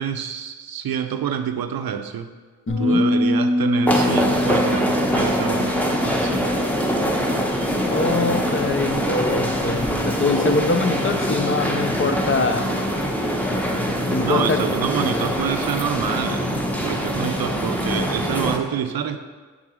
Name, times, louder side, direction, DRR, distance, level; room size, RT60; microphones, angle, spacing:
voice 1, 0.0-2.3 2.8-6.6 14.2-19.2, right 8 dB, 90° right, 9 dB, 0.5 m, -27 dB
Bass guitar, 2.7-8.9, left 1 dB, 70° left, 2.1 m, -25 dB
voice 2, 2.7-3.0 7.9-12.7 14.1-14.6, left 3 dB, 35° left, 7 dB, 0.7 m, -23 dB
sound 1, 3.9-18.6, equal, 5° left, 1.0 m, -23 dB
6.1 x 4.0 x 6.2 m, 1.4 s
cardioid pair, 45°, 35 cm